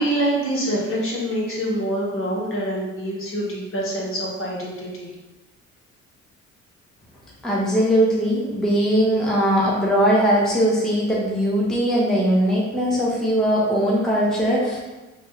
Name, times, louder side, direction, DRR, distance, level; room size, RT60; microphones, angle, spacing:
voice 1, 0.0-5.1, right 1 dB, 45° left, -5 dB, 1.1 m, -25 dB
voice 2, 7.4-14.8, equal, ahead, -5 dB, 0.6 m, -20 dB
3.0 x 2.3 x 3.0 m, 1.1 s
cardioid pair, 90°, 30 cm